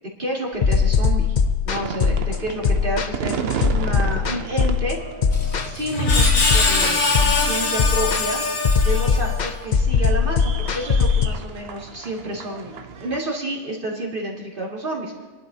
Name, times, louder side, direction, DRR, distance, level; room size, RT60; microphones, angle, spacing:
voice 1, 0.2-1.4 1.6-5.0 5.6-8.4 8.8-15.3, right 1 dB, 40° right, -2 dB, 2.5 m, -29 dB
sound 1, 0.6-11.3, left 5 dB, 40° left, 0.7 m, -20 dB
sound 2, 1.7-13.2, right 6 dB, 55° right, 0.9 m, -34 dB
Screech, 5.3-9.6, left 3 dB, 75° left, 2.1 m, -23 dB
29.5 x 11.5 x 2.8 m, 1.3 s
omnidirectional pair, 1.4 m